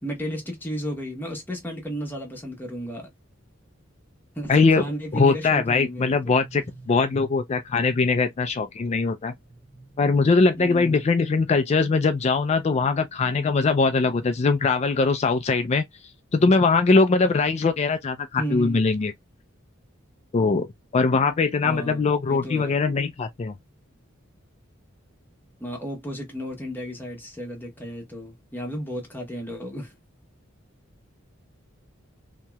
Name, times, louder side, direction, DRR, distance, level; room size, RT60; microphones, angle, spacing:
voice 1, 0.0-3.1 4.4-6.4 10.6-11.1 18.4-18.9 21.6-22.8 25.6-29.9, equal, 10° left, 1.2 m, -33 dB
voice 2, 4.5-4.8 5.1-9.3 10.0-15.8 16.3-19.1 20.3-20.7 20.9-23.5, left 4 dB, 35° left, 0.4 m, -21 dB
sound 1, 5.8-7.7 9.4-11.4 13.2-15.1, right 1 dB, 10° right, 0.7 m, -48 dB
2.9 x 2.7 x 2.2 m
head